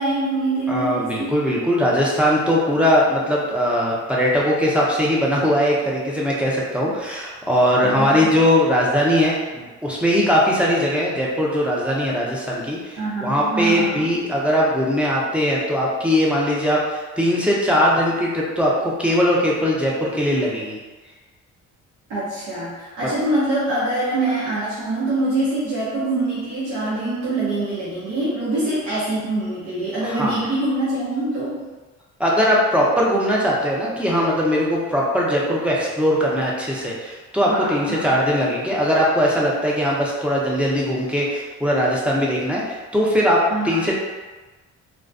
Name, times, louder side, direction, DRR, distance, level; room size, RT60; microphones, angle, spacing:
voice 1, 0.0-1.4 7.8-8.4 13.0-14.2 22.1-31.6 37.5-38.1 43.5-43.9, right 2 dB, 75° right, -10 dB, 0.8 m, -24 dB
voice 2, 0.7-20.8 30.0-30.4 32.2-43.9, equal, 5° right, -5 dB, 0.5 m, -20 dB
2.5 x 2.2 x 2.5 m, 1.3 s
cardioid pair, 90°, 30 cm